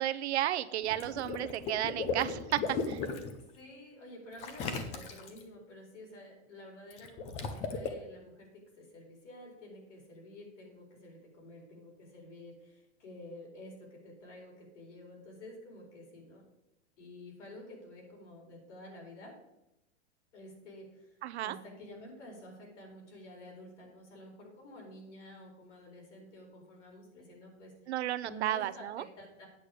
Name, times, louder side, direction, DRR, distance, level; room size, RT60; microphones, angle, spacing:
voice 1, 0.0-3.0 21.2-21.6 27.9-29.0, right 13 dB, 70° right, 14 dB, 0.6 m, -33 dB
Water / Liquid, 0.8-3.3 4.4-5.4 6.9-7.9, left 4 dB, 20° left, 0.6 m, -36 dB
voice 2, 3.4-16.4 17.0-19.4 20.3-27.7 28.2-29.5, left 1 dB, 85° left, 0 dB, 4.5 m, -50 dB
8.5 x 8.5 x 5.0 m, 0.89 s
supercardioid pair, 170°, 35 cm